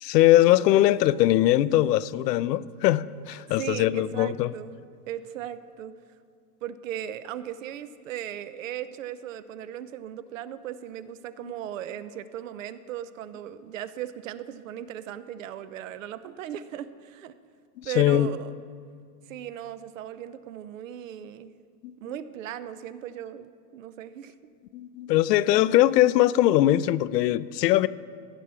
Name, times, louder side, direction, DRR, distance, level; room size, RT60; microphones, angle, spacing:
voice 1, 0.0-4.5 17.8-18.3 24.7-27.9, left 14 dB, 85° left, 17 dB, 0.6 m, -21 dB
voice 2, 3.5-4.8 5.1-6.0 6.6-17.3 17.8-18.6 19.3-21.5 22.0-24.3, right 11 dB, 55° right, 15 dB, 0.5 m, -37 dB
14.5 x 6.2 x 5.5 m, 2.2 s
supercardioid pair, 175°, 48 cm